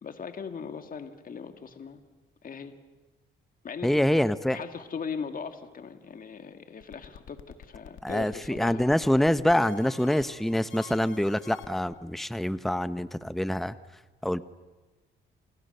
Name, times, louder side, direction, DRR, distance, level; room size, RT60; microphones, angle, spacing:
voice 1, 0.0-2.0 2.4-2.7 3.6-4.0 4.5-8.9, left 6 dB, 45° left, 8 dB, 2.2 m, -39 dB
voice 2, 3.8-4.6 8.0-13.8 14.2-14.4, left 1 dB, ahead, 13 dB, 0.9 m, -25 dB
sound 1, 6.8-11.9, left 9 dB, 80° left, 2.3 m, -48 dB
29.5 x 28.5 x 6.9 m, 1.2 s
cardioid pair, 90°, 20 cm